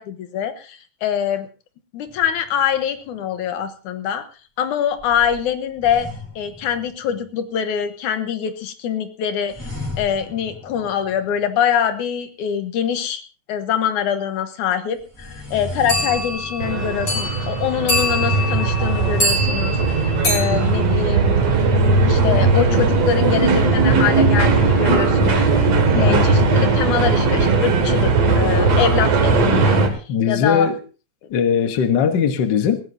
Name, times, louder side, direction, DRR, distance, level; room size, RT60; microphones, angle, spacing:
voice 1, 0.0-1.5 1.9-4.3 4.6-6.1 6.4-9.7 10.0-13.2 13.5-21.3 22.1-25.4 26.0-29.9 30.2-30.7, left 8 dB, 75° left, 2.5 m, -24 dB
sound 1, 2.1-3.0 5.0-7.3 9.5-11.6 15.0-19.6, left 2 dB, 5° left, 3.5 m, -37 dB
sound 2, 15.9-21.8, left 1 dB, 35° left, 5.5 m, -25 dB
sound 3, 16.6-29.9, right 3 dB, 55° right, 3.1 m, -18 dB
voice 2, 25.9-26.4 30.1-30.8 31.3-32.8, left 7 dB, 55° left, 1.2 m, -19 dB
19.5 x 16.0 x 2.8 m
omnidirectional pair, 3.6 m